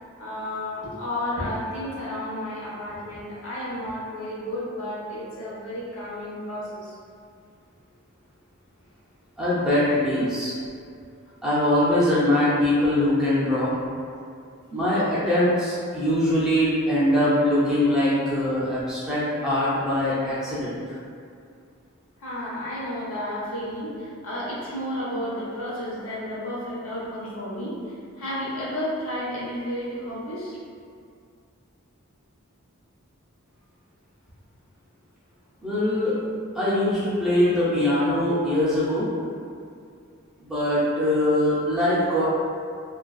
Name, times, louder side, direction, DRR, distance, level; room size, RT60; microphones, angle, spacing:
voice 1, 0.2-6.9 22.2-30.6, left 1 dB, 75° left, -8 dB, 0.8 m, -32 dB
voice 2, 9.4-10.6 11.4-13.7 14.7-21.0 35.6-36.1 36.5-39.1 40.4-42.3, left 1 dB, 5° right, -11 dB, 0.4 m, -22 dB
2.5 x 2.3 x 2.3 m, 2.3 s
head